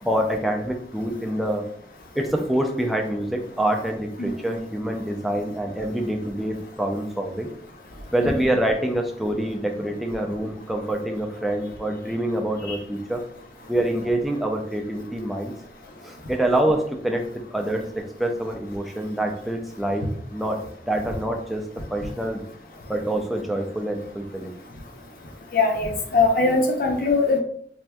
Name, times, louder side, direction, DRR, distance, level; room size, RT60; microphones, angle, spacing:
voice 1, 0.0-1.6 2.2-7.5 8.1-13.2 13.7-15.5 16.0-20.1 20.3-21.6 21.9-22.4 22.9-24.5, right 1 dB, ahead, 2 dB, 0.4 m, -26 dB
voice 2, 25.5-27.4, left 3 dB, 50° left, 2 dB, 0.6 m, -20 dB
4.3 x 2.5 x 2.2 m, 0.63 s
head